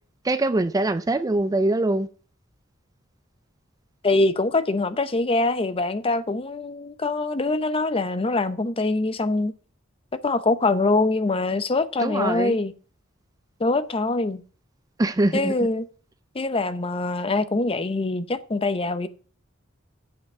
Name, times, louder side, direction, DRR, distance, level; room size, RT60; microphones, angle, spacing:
voice 1, 0.2-2.1 12.0-12.6 15.0-15.5, right 2 dB, 20° right, 0.4 m, -23 dB
voice 2, 4.0-9.5 10.2-12.7 13.6-14.4 15.3-15.9 16.3-19.1, left 2 dB, 30° left, 0.7 m, -24 dB
8.1 x 5.8 x 7.6 m
head